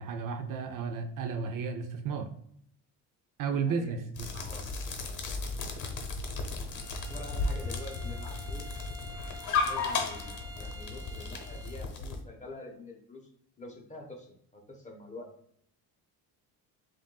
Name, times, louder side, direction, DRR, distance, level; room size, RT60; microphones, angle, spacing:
voice 1, 0.0-2.3 3.4-4.4, right 5 dB, 55° right, 7 dB, 0.6 m, -33 dB
voice 2, 3.5-4.1 4.3-4.6 6.7-8.7 9.6-13.3 13.6-15.3, left 2 dB, 20° left, 1 dB, 1.1 m, -47 dB
sound 1, 4.2-12.2, left 3 dB, 50° left, 1.0 m, -34 dB
Bowed string instrument, 6.7-11.9, equal, 10° right, 0.6 m, -49 dB
7.1 x 2.6 x 2.3 m, 0.69 s
cardioid pair, 100°, 39 cm